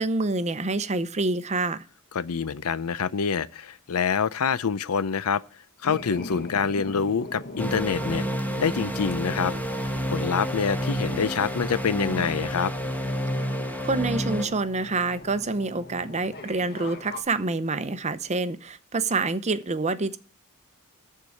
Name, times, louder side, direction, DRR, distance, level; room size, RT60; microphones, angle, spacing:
voice 1, 0.0-1.8 13.8-20.2, right 3 dB, 30° right, 0.7 m, -27 dB
voice 2, 2.1-5.4 5.8-8.2 8.6-9.5 10.1-12.7, left 6 dB, 80° left, 0.6 m, -26 dB
sound 1, 5.8-17.2, left 2 dB, 50° left, 1.5 m, -42 dB
sound 2, 7.6-14.5, equal, 5° left, 1.4 m, -29 dB
13.5 x 4.7 x 8.4 m
head